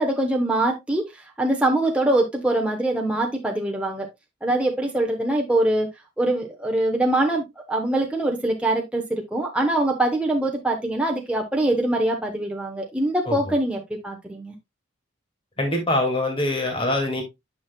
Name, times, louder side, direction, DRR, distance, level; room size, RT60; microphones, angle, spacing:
voice 1, 0.0-4.1 4.4-5.9 6.2-14.5, right 1 dB, 5° right, 0.9 m, -23 dB
voice 2, 15.6-17.2, left 1 dB, 25° left, 2.2 m, -23 dB
9.4 x 6.0 x 2.2 m
head